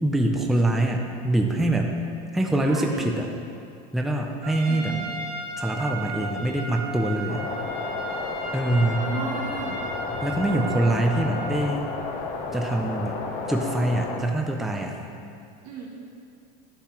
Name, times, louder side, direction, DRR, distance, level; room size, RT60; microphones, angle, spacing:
voice 1, 0.0-2.0 2.3-3.3 3.9-5.0 5.6-7.5 8.5-9.1 10.2-11.9 12.5-13.2 13.5-15.0, right 1 dB, ahead, 1 dB, 0.4 m, -24 dB
voice 2, 2.6-3.2 4.7-5.1 9.0-9.8 15.6-15.9, right 4 dB, 85° right, -4 dB, 2.0 m, -34 dB
Trumpet, 4.4-11.7, right 2 dB, 50° right, 1.5 m, -35 dB
sound 1, 7.3-14.2, left 4 dB, 40° left, 0.8 m, -32 dB
11.5 x 6.6 x 2.9 m, 2.4 s
supercardioid pair, 145°, 21 cm